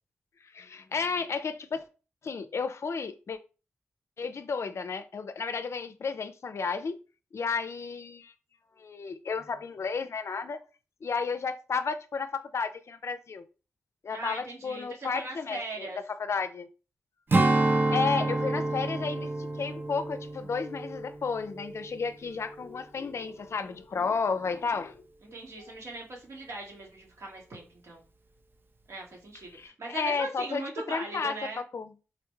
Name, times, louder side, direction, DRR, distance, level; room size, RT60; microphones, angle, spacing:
voice 1, 0.5-1.8 2.2-3.4 4.2-6.9 7.3-8.3 8.8-10.6 11.0-13.4 14.0-16.7 17.9-19.3 19.6-25.0 25.3-25.7 29.5-30.6 30.9-31.4 31.7-31.9, left 5 dB, 60° left, 0.4 m, -32 dB
voice 2, 14.1-16.0 25.2-28.0 28.9-31.6, right 2 dB, 70° right, 1.3 m, -40 dB
Strum, 17.3-22.0 22.4-22.6, right 2 dB, 40° right, 0.5 m, -28 dB
3.8 x 2.2 x 3.0 m
cardioid pair, 50°, 5 cm